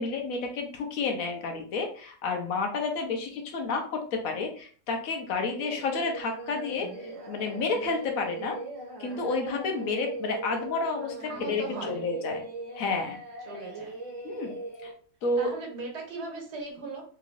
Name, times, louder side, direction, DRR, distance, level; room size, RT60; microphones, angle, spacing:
voice 1, 0.0-8.6 9.0-12.4 12.8-13.2 14.2-14.5 14.8-14.9 15.2-15.5, left 3 dB, 65° left, 3 dB, 1.1 m, -30 dB
Singing, 5.5-14.9, right 2 dB, 55° right, 1.3 m, -40 dB
voice 2, 11.2-12.0 13.4-14.0 15.4-17.0, right 3 dB, 80° right, -1 dB, 1.8 m, -38 dB
3.6 x 3.0 x 2.5 m, 0.43 s
omnidirectional pair, 1.7 m